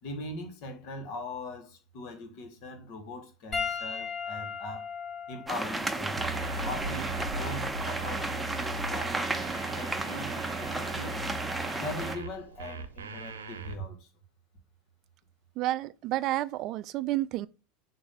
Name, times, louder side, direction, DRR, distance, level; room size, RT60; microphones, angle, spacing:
voice 1, 0.0-4.9 5.3-6.2 6.6-11.2 11.8-14.1, left 1 dB, 55° left, 1.6 m, -41 dB
Piano, 3.5-8.2 9.1-9.3 11.3-11.4, left 6 dB, 40° left, 1.9 m, -38 dB
sound 1, 5.5-12.2, right 2 dB, 10° right, 0.7 m, -33 dB
sound 2, 6.2-13.8, right 4 dB, 85° right, 0.8 m, -38 dB
voice 2, 15.6-17.5, right 15 dB, 50° right, 0.4 m, -30 dB
6.9 x 2.7 x 5.6 m
hypercardioid pair, 85°, 0 cm